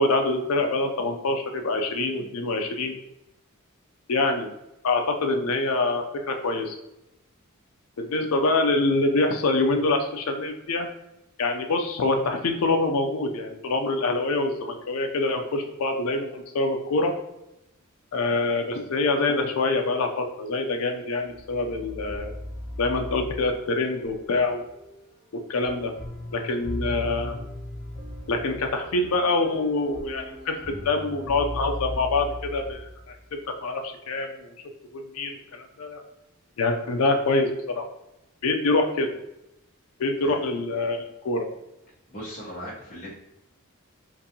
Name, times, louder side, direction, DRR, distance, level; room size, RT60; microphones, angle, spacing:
voice 1, 0.0-2.9 4.1-4.5 4.8-6.8 8.0-10.9 11.4-17.1 18.1-22.3 22.8-24.6 25.5-25.9 26.3-27.4 28.3-30.6 30.8-33.2 33.6-34.6 34.9-36.0 36.6-37.8 38.4-39.2 40.0-41.5, left 2 dB, 80° left, 4 dB, 0.5 m, -25 dB
sound 1, 21.3-33.3, left 1 dB, 40° right, 1.2 m, -38 dB
voice 2, 42.1-43.2, equal, 35° left, -8 dB, 0.9 m, -38 dB
3.9 x 2.6 x 2.7 m, 0.87 s
head